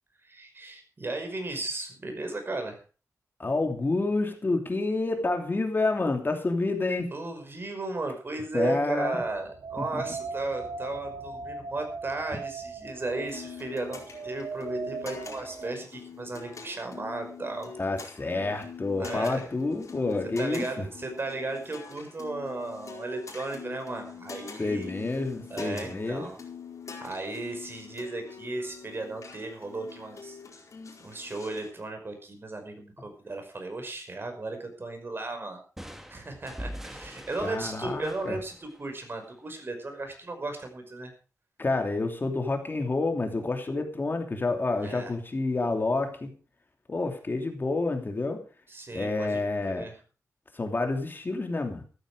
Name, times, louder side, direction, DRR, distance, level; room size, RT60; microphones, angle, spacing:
voice 1, 0.2-2.8 7.1-17.7 19.0-19.5 20.4-24.9 25.5-26.4 27.0-30.4 31.0-35.6 36.1-41.1 44.8-45.1 48.7-49.9, right 2 dB, 40° right, 5 dB, 5.5 m, -35 dB
voice 2, 3.4-7.1 8.5-9.2 9.8-10.0 17.8-20.8 24.6-26.2 37.4-38.4 41.6-46.3 46.9-48.4 48.9-49.9 50.5-51.8, left 3 dB, 35° left, 5 dB, 2.9 m, -29 dB
sound 1, 9.2-15.7, right 4 dB, 85° right, 2.1 m, -39 dB
sound 2, 13.0-31.7, left 6 dB, 65° left, 4.7 m, -44 dB
sound 3, 35.8-39.4, equal, 5° right, 2.1 m, -43 dB
14.5 x 14.0 x 5.0 m, 0.36 s
wide cardioid pair, 120°, 6 cm